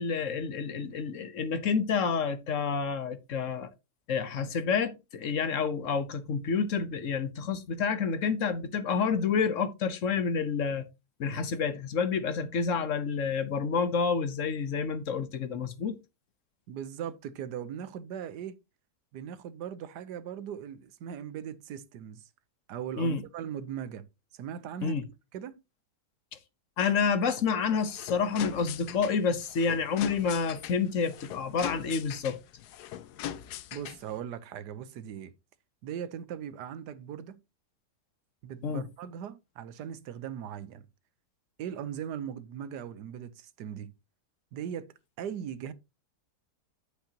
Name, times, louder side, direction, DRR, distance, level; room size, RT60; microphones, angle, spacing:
voice 1, 0.0-3.7 4.1-10.9 11.2-16.0 23.0-23.2 24.8-25.0 26.8-32.4 38.6-38.8, left 5 dB, 55° left, 1.2 m, -29 dB
voice 2, 16.7-18.6 19.1-22.2 22.7-24.1 24.3-25.0 25.3-25.6 33.7-35.3 35.8-37.4 38.4-40.9 41.6-43.9 44.5-45.7, right 9 dB, 75° right, 1.4 m, -39 dB
sound 1, 27.6-34.2, left 11 dB, 75° left, 1.2 m, -41 dB
8.6 x 7.9 x 2.8 m
omnidirectional pair, 1.8 m